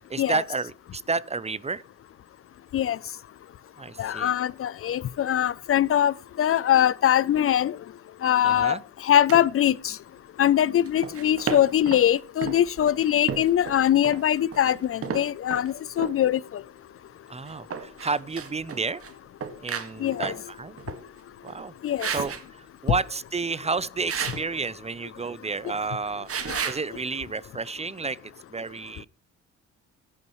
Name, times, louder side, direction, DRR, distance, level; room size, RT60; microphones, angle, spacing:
voice 1, 0.1-1.8 3.8-4.3 8.4-8.8 17.3-19.0 19.6-20.8 21.4-21.7 22.1-26.3 26.6-28.2 28.5-29.1, right 4 dB, 20° right, 0.6 m, -31 dB
voice 2, 4.0-7.7 8.2-8.8 9.1-9.9 10.4-16.4 20.0-20.3 21.8-22.1, left 10 dB, 50° left, 0.5 m, -22 dB
sound 1, 9.3-9.5 10.9-12.1 12.4-15.7 16.0-16.2 17.5-19.1 19.4-20.4 20.8-21.0 21.5-21.7 22.0-22.4 24.1-24.5 26.3-26.8, right 7 dB, 50° right, 1.8 m, -33 dB
16.0 x 11.0 x 3.1 m
cardioid pair, 90°, 30 cm